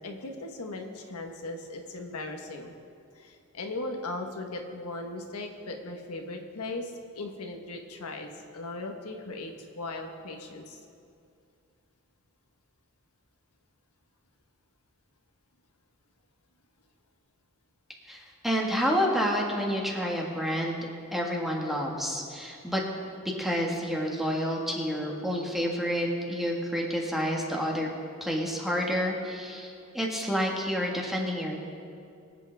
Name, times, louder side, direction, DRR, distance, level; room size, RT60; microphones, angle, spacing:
voice 1, 0.0-2.7 3.1-10.8, left 2 dB, 90° left, 3 dB, 1.3 m, -38 dB
voice 2, 18.1-22.8 23.2-27.9 28.2-31.6, equal, ahead, -2 dB, 1.7 m, -29 dB
22.5 x 8.5 x 3.5 m, 2.4 s
head